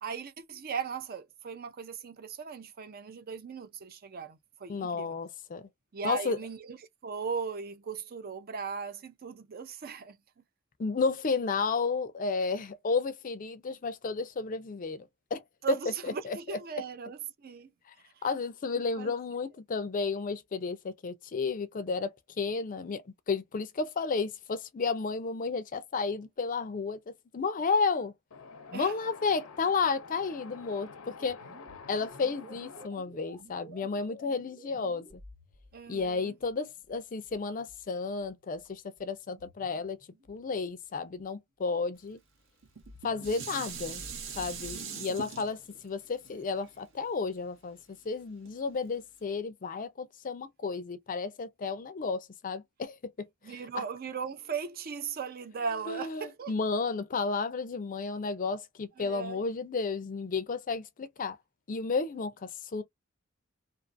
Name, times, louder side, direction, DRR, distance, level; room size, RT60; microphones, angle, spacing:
voice 1, 0.0-5.2 5.9-6.8 7.0-10.2 15.6-17.7 18.7-19.1 28.7-28.9 35.7-36.3 44.7-45.3 53.4-56.5 59.0-59.4, right 5 dB, 45° right, 0.5 m, -38 dB
voice 2, 4.7-5.7 6.0-6.4 10.8-15.0 15.3-15.4 16.3-16.6 18.2-22.1 22.4-28.1 28.7-31.4 31.9-35.2 35.9-40.0 40.3-42.2 43.0-44.0 44.4-47.8 48.1-53.8 55.9-61.4 61.7-62.8, left 4 dB, 40° left, 0.4 m, -32 dB
Wind, 28.3-32.9, left 5 dB, 85° left, 0.6 m, -48 dB
sound 1, 31.3-41.4 42.7-44.8, equal, 85° right, 1.4 m, -54 dB
Dishes pots and pans, 42.6-47.9 48.4-48.5, right 7 dB, 65° right, 0.8 m, -42 dB
2.5 x 2.5 x 2.5 m
head